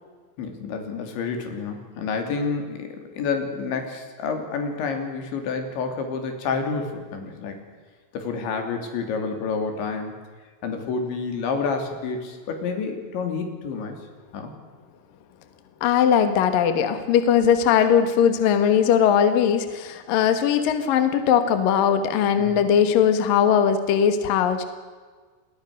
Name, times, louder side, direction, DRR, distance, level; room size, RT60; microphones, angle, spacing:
voice 1, 0.4-7.6 8.1-10.2 10.6-14.0 14.3-14.5 22.4-22.7, left 5 dB, 85° left, 5 dB, 5.3 m, -29 dB
voice 2, 15.8-24.7, left 8 dB, 60° left, 9 dB, 3.0 m, -19 dB
28.5 x 20.5 x 6.6 m, 1.5 s
omnidirectional pair, 5.2 m